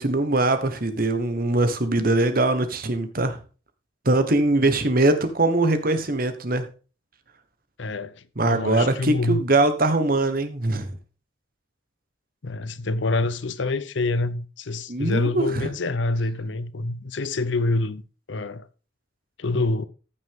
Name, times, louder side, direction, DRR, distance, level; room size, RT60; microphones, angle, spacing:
voice 1, 0.0-3.4 4.0-6.7 8.4-10.9 14.9-15.7, right 2 dB, 45° right, 1.2 m, -22 dB
voice 2, 7.8-9.4 12.4-18.0 18.3-18.7 19.4-19.9, left 2 dB, 65° left, 0.7 m, -26 dB
14.5 x 6.0 x 3.6 m
head